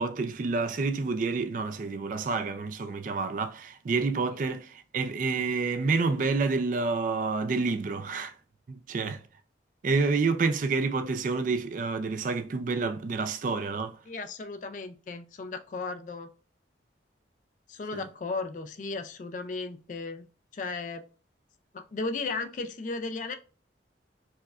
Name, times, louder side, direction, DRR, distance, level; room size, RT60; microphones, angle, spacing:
voice 1, 0.0-8.3 8.7-9.2 9.8-14.0 17.9-18.0, right 4 dB, 45° right, 0.3 m, -28 dB
voice 2, 14.1-16.3 17.7-20.3 20.5-21.1 21.7-23.3, left 3 dB, 40° left, 0.3 m, -35 dB
4.6 x 2.1 x 2.4 m
head